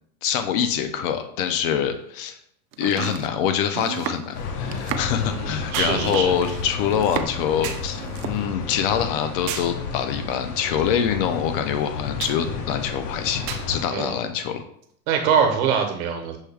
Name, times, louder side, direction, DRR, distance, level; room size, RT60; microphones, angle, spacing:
voice 1, 0.2-2.4 2.8-14.6, left 8 dB, 35° left, 8 dB, 0.4 m, -25 dB
sound 1, 2.0-2.1 5.7-6.1 7.6-7.9 9.5-9.8 12.2-12.5 13.5-13.8 14.8-14.9, right 7 dB, 35° right, 0.5 m, -33 dB
Domestic sounds home sounds, 2.7-7.5 7.8-8.4, right 9 dB, 90° right, 0.6 m, -33 dB
sound 2, 4.3-13.8, left 5 dB, 70° left, 0.9 m, -32 dB
voice 2, 5.1-6.3 13.9-14.2 15.1-16.4, right 6 dB, 65° right, 4 dB, 1.1 m, -23 dB
6.3 x 2.2 x 3.4 m, 0.68 s
hypercardioid pair, 130°, 48 cm